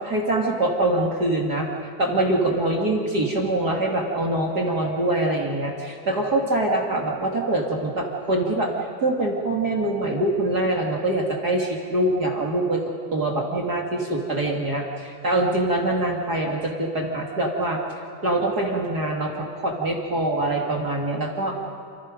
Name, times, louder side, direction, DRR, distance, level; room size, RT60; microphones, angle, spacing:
voice 1, 0.0-1.7 2.0-8.7 9.0-12.8 13.1-17.8 18.2-21.6, right 1 dB, 35° right, -1 dB, 1.9 m, -24 dB
29.0 x 29.0 x 5.3 m, 2.3 s
omnidirectional pair, 4.9 m